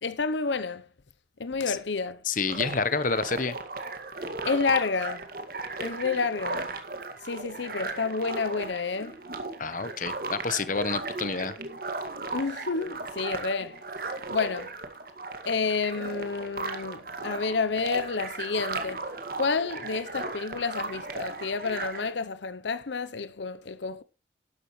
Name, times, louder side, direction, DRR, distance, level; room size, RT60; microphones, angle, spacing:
voice 1, 0.0-0.9 1.4-2.2 4.4-5.3 5.8-6.7 7.2-9.2 12.3-13.8 14.3-14.7 15.5-19.0 19.4-24.0, left 4 dB, 80° left, 0.8 m, -29 dB
voice 2, 2.2-3.6 9.6-11.5, left 4 dB, 45° left, 1.0 m, -28 dB
sound 1, 2.5-22.1, right 3 dB, 55° right, 2.0 m, -36 dB
12.5 x 11.5 x 3.2 m
head